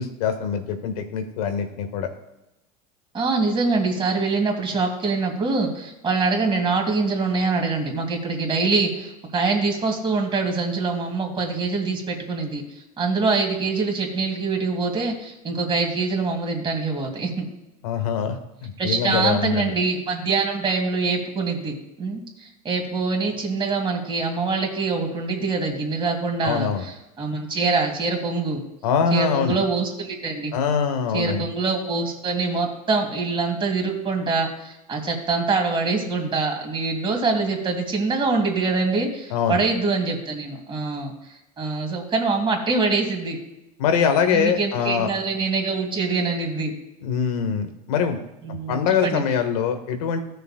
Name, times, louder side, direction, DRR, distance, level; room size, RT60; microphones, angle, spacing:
voice 1, 0.0-2.1 17.8-18.4 18.6-19.7 26.4-26.8 28.8-29.6 30.5-31.5 39.3-39.6 43.8-45.1 47.0-48.2 48.5-50.2, left 7 dB, 80° left, 7 dB, 1.4 m, -23 dB
voice 2, 3.1-12.6 13.0-17.5 18.8-28.6 29.1-30.5 31.1-41.1 41.6-43.4 44.3-46.7 48.4-49.2, right 4 dB, 25° right, 2 dB, 2.5 m, -24 dB
14.5 x 6.7 x 2.2 m, 0.96 s
supercardioid pair, 100°, 19 cm